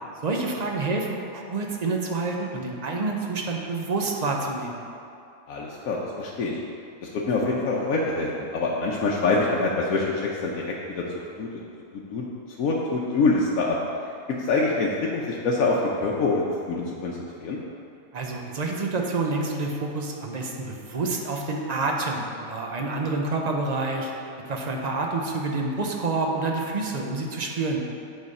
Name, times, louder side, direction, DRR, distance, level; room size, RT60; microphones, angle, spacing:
voice 1, 0.2-4.7 18.1-24.1 24.5-27.8, right 3 dB, 40° right, 0 dB, 0.6 m, -28 dB
voice 2, 5.5-6.6 7.0-10.0 10.4-11.0 11.4-11.5 12.1-12.2 12.6-13.8 14.5-16.4 16.7-17.6, left 3 dB, 75° left, -3 dB, 1.1 m, -25 dB
8.2 x 3.9 x 5.3 m, 2.6 s
omnidirectional pair, 1.5 m